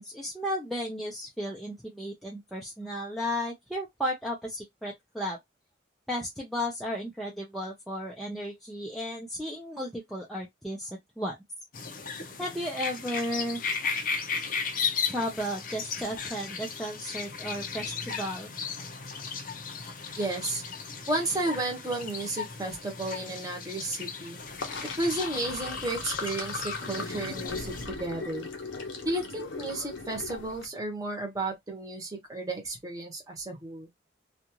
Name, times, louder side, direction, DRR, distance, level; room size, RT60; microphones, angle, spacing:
voice 1, 0.0-5.4 6.1-11.4 12.4-13.6 15.1-18.5, equal, ahead, 0.5 m, -34 dB
sound 1, 11.7-27.9, left 5 dB, 45° left, 0.6 m, -36 dB
voice 2, 20.2-20.6 21.1-24.4 24.8-28.5 29.0-33.9, right 2 dB, 20° right, 1.0 m, -33 dB
Sink (filling or washing), 24.4-30.6, left 4 dB, 80° left, 0.8 m, -38 dB
2.5 x 2.4 x 2.9 m
head